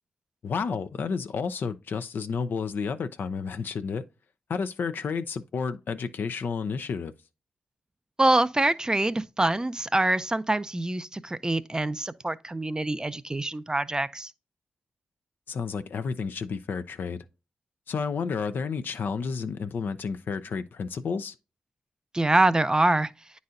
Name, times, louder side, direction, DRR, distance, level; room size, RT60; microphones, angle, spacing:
voice 1, 0.4-4.0 4.5-7.1 15.5-17.2 17.9-21.3, left 5 dB, 70° left, 0.5 m, -31 dB
voice 2, 8.2-14.3 22.1-23.1, right 2 dB, 20° right, 0.5 m, -25 dB
9.3 x 4.1 x 2.5 m
supercardioid pair, 40°, 4 cm